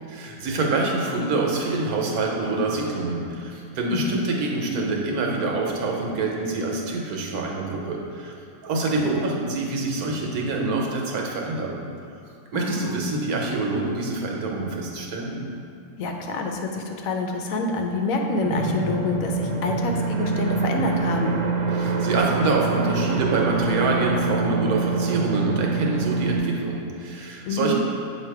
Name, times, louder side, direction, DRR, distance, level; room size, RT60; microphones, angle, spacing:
voice 1, 0.1-8.3 8.6-11.8 12.5-15.5 21.7-27.7, right 3 dB, 85° right, -1 dB, 1.3 m, -26 dB
voice 2, 3.9-4.2 9.0-9.1 12.5-13.0 16.0-21.4 27.5-27.7, left 2 dB, 75° left, 3 dB, 1.0 m, -27 dB
sound 1, 18.4-26.4, right 3 dB, 65° right, 0.9 m, -25 dB
7.5 x 2.8 x 4.6 m, 2.6 s
omnidirectional pair, 1.5 m